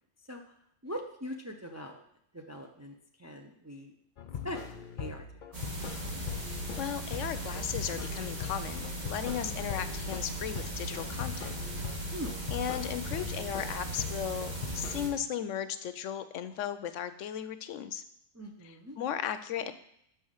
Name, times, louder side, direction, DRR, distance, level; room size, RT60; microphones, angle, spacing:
voice 1, 0.8-2.0 2.3-3.9 4.4-4.6 5.0-5.6 9.4-9.6 12.1-12.3 18.3-19.0, equal, 20° right, 3 dB, 0.4 m, -42 dB
sound 1, 4.2-6.8 7.1-10.3 10.6-13.7 14.0-15.2, left 6 dB, 50° left, 0.7 m, -41 dB
sound 2, 5.5-15.1, right 1 dB, 35° right, 1.5 m, -38 dB
voice 2, 6.3-11.5 12.0-12.2 12.5-18.0 18.6-19.7, left 9 dB, 80° left, 12 dB, 0.9 m, -36 dB
6.2 x 5.6 x 6.4 m, 0.73 s
omnidirectional pair, 1.3 m